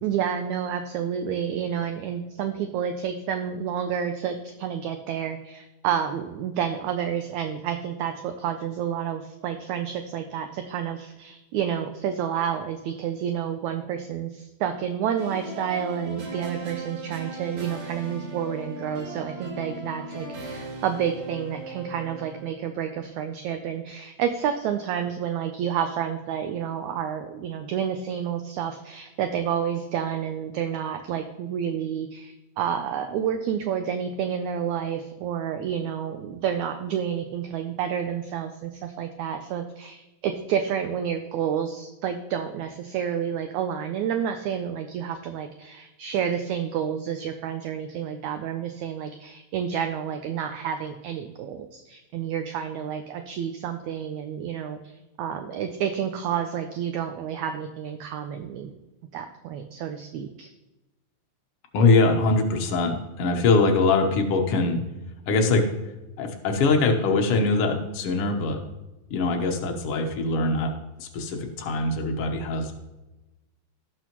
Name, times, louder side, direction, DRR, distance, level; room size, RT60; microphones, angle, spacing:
voice 1, 0.0-58.7 59.1-60.5, right 8 dB, 80° right, 7 dB, 1.7 m, -29 dB
sound 1, 15.2-22.6, right 2 dB, 60° right, 2.7 m, -38 dB
voice 2, 61.7-64.8 65.3-65.7 66.2-68.6 69.1-70.7 71.0-72.7, left 3 dB, 75° left, 3 dB, 1.3 m, -22 dB
17.5 x 6.2 x 3.0 m, 1.0 s
omnidirectional pair, 4.0 m